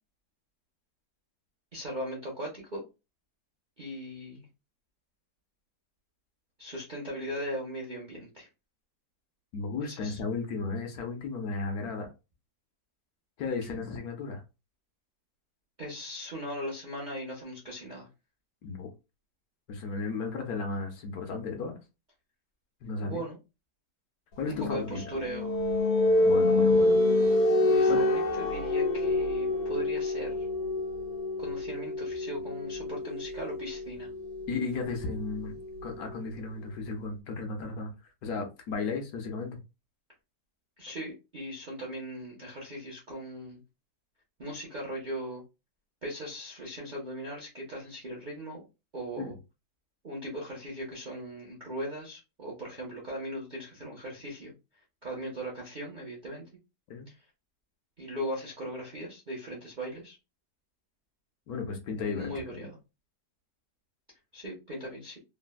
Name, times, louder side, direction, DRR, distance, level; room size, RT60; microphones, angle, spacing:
voice 1, 1.7-2.8 3.8-4.4 6.6-8.5 9.8-10.2 15.8-18.1 23.0-23.4 24.5-25.6 27.7-30.5 31.4-34.1 40.8-43.6 44.4-45.4 46.0-48.6 48.9-49.4 50.0-54.5 55.0-56.5 57.1-57.2 58.0-60.2 61.9-62.8 64.3-65.2, equal, 50° right, 0.5 m, -38 dB
voice 2, 9.5-12.1 13.4-14.4 18.6-18.9 19.7-21.8 22.8-23.2 24.4-25.0 26.2-26.9 27.9-28.0 34.5-37.9 38.2-39.6 49.2-49.3 56.9-57.1 61.5-62.7, left 4 dB, 70° left, 1.1 m, -34 dB
sound 1, 24.5-36.0, left 2 dB, 90° left, 1.3 m, -27 dB
3.3 x 2.1 x 2.2 m
omnidirectional pair, 1.8 m